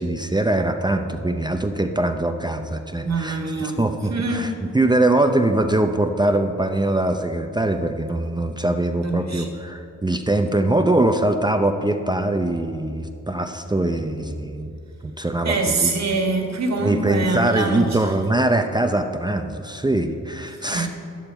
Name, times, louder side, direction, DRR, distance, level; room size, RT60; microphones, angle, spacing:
voice 1, 0.0-4.5 4.7-14.7 15.0-15.9 16.8-20.9, right 2 dB, 15° right, 6 dB, 0.6 m, -22 dB
voice 2, 3.0-3.8 4.1-4.5 9.0-9.5 15.4-18.1 20.6-20.9, right 3 dB, 50° right, 1 dB, 1.8 m, -24 dB
11.0 x 8.9 x 4.5 m, 2.6 s
cardioid pair, 60°, 33 cm